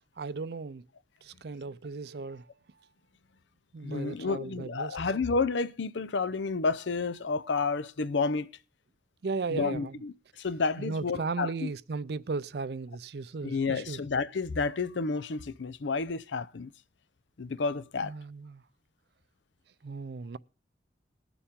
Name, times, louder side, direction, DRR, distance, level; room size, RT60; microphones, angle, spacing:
voice 1, 0.2-0.8 1.2-2.5 3.7-5.0 9.2-10.0 10.8-14.0 18.0-18.6 19.8-20.4, right 4 dB, 60° right, 0.5 m, -36 dB
voice 2, 3.8-8.5 9.5-11.7 13.4-16.7 17.4-18.1, left 4 dB, 80° left, 0.6 m, -30 dB
21.0 x 7.0 x 3.6 m
head